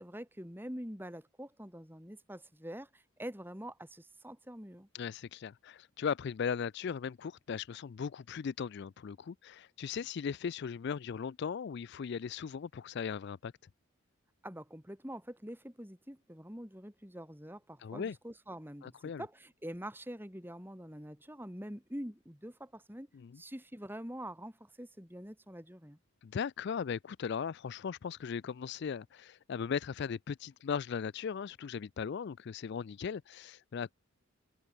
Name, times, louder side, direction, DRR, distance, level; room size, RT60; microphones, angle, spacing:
voice 1, 0.0-4.9 14.4-23.1 23.4-26.0, equal, 10° right, 4.5 m, -45 dB
voice 2, 4.9-13.5 17.8-18.2 18.8-19.2 23.1-23.4 26.2-33.9, left 6 dB, 50° left, 0.3 m, -38 dB
open air
head